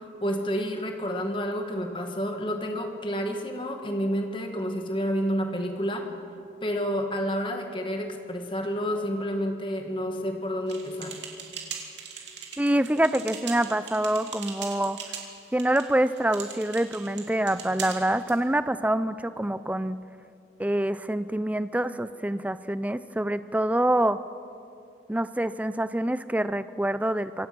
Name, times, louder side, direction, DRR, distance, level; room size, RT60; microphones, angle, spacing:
voice 1, 0.2-6.0 6.6-11.2, equal, 30° left, 4 dB, 1.9 m, -29 dB
sound 1, 10.7-18.4, right 7 dB, 80° right, 2.8 m, -40 dB
voice 2, 12.6-15.0 15.5-20.0 20.6-24.2 25.1-27.5, right 1 dB, 10° right, 13 dB, 0.4 m, -26 dB
26.5 x 16.5 x 6.1 m, 2.6 s
head